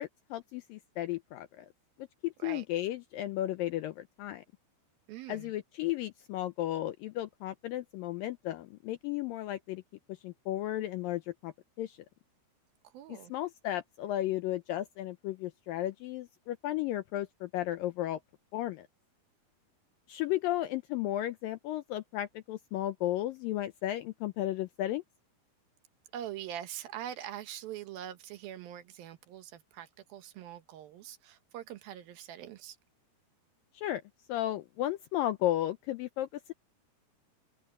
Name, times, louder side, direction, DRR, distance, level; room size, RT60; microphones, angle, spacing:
voice 1, 0.0-1.7 2.0-4.4 5.3-9.8 10.1-12.0 13.1-18.2 18.5-18.9 20.1-25.0 33.7-34.0 34.3-36.5, left 14 dB, 85° left, 2.0 m, -34 dB
voice 2, 5.1-5.5 12.9-13.3 26.1-32.8, right 11 dB, 70° right, 2.6 m, -43 dB
open air
omnidirectional pair, 4.8 m